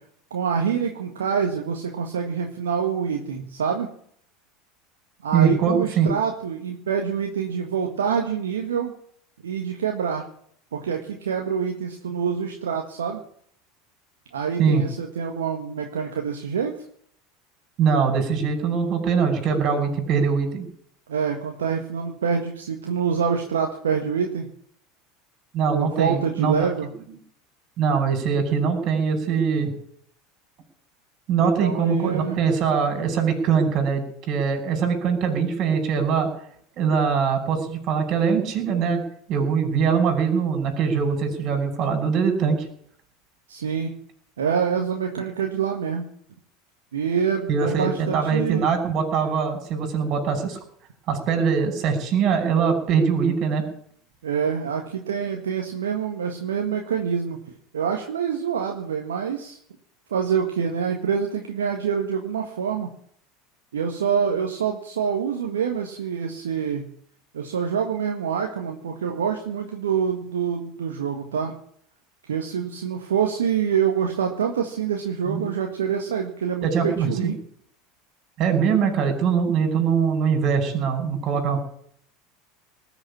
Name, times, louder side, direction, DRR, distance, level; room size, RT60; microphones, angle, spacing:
voice 1, 0.3-3.9 5.2-8.9 9.4-10.2 10.7-13.2 14.3-16.7 21.1-24.5 25.7-26.9 31.4-32.4 43.5-43.9 44.4-46.1 46.9-48.7 54.2-57.4 57.7-59.6 60.1-62.9 63.7-66.8 67.3-71.5 72.2-77.4, right 7 dB, 80° right, 2 dB, 1.7 m, -26 dB
voice 2, 5.3-6.1 14.6-14.8 17.8-20.7 25.5-26.7 27.8-29.7 31.3-36.3 36.8-39.0 39.3-42.7 47.5-50.6 51.1-53.7 75.3-75.4 76.6-77.3 78.4-81.6, right 6 dB, 50° right, 6 dB, 5.9 m, -22 dB
19.5 x 7.0 x 10.0 m, 0.63 s
hypercardioid pair, 80°, 0 cm